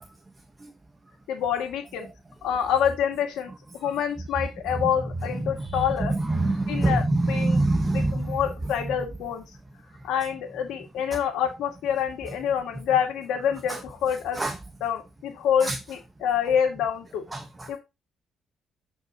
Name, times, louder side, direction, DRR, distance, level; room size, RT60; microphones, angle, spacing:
voice 1, 1.3-2.1 2.4-6.2 6.7-7.6 7.9-9.4 10.0-14.4 14.8-17.2 17.7-17.8, left 8 dB, 85° left, 2.4 m, -27 dB
voice 2, 5.7-8.4 14.4-14.5 15.6-15.7 17.3-17.7, right 2 dB, 20° right, 1.3 m, -24 dB
11.5 x 5.4 x 3.1 m
cardioid pair, 90°, 0 cm